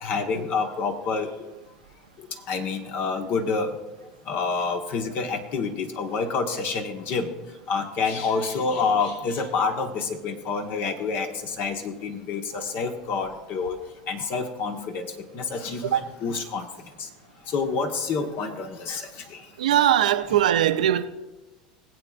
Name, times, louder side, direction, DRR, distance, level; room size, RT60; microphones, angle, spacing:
voice 1, 0.0-1.3 2.5-3.7 4.3-7.3 7.7-13.8 14.1-15.1 15.3-16.7 17.5-19.1 20.2-20.4, left 4 dB, 55° left, 1.5 m, -28 dB
voice 2, 19.6-21.1, right 11 dB, 85° right, 0.7 m, -20 dB
21.0 x 8.2 x 2.6 m
hypercardioid pair, 85°, 4 cm